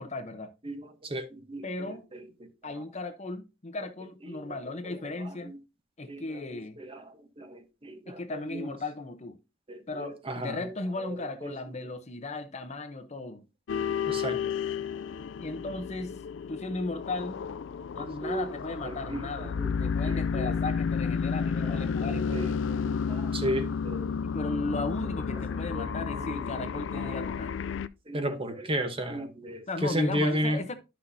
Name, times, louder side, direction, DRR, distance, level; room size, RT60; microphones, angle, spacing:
voice 1, 0.0-0.5 1.6-2.1 2.6-5.5 6.0-6.8 8.1-9.4 9.9-13.5 15.4-16.2 16.5-17.4 17.9-22.5 24.2-27.6 29.7-30.7, left 2 dB, 35° left, 0.8 m, -36 dB
voice 2, 0.6-1.7 2.1-2.5 4.3-4.6 5.4-5.6 6.1-6.4 6.8-8.7 9.7-11.2 11.4-11.6 14.1-14.5 18.0-18.5 18.8-20.5 21.6-21.8 22.3-22.5 22.8-24.2 25.7-26.4 26.7-27.1 28.1-30.6, equal, 30° right, 1.0 m, -34 dB
sound 1, 13.7-27.9, left 6 dB, 65° left, 0.4 m, -32 dB
11.0 x 6.0 x 2.7 m
head